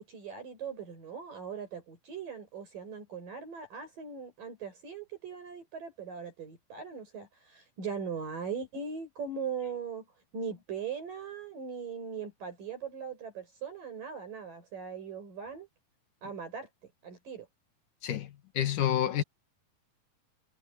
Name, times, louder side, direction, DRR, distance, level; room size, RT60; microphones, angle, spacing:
voice 1, 0.0-10.1 10.3-15.7 16.2-17.5, right 6 dB, 65° right, 7.9 m, -40 dB
voice 2, 18.0-19.2, left 10 dB, 65° left, 2.9 m, -29 dB
omnidirectional pair, 4.2 m